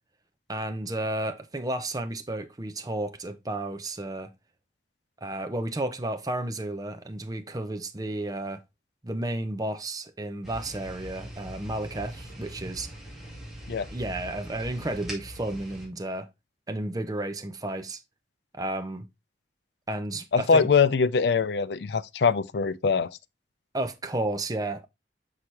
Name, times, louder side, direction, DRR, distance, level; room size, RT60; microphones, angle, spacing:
voice 1, 0.5-4.3 5.2-8.6 9.0-12.9 13.9-16.3 16.7-18.0 18.5-19.1 19.9-20.7 23.7-24.9, right 1 dB, 20° right, 0.6 m, -32 dB
sound 1, 10.4-15.9, equal, ahead, 2.3 m, -41 dB
voice 2, 20.3-23.2, left 5 dB, 70° left, 0.5 m, -23 dB
6.0 x 5.7 x 3.2 m
head